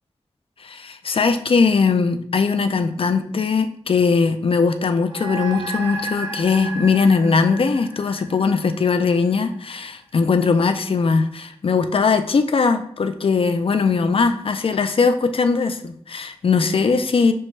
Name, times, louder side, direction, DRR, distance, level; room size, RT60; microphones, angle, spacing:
voice 1, 0.6-17.3, left 4 dB, 60° left, 9 dB, 0.3 m, -20 dB
sound 1, 5.0-9.7, right 2 dB, 45° right, 1.6 m, -34 dB
6.4 x 2.2 x 3.1 m, 0.63 s
wide cardioid pair, 95°, 11 cm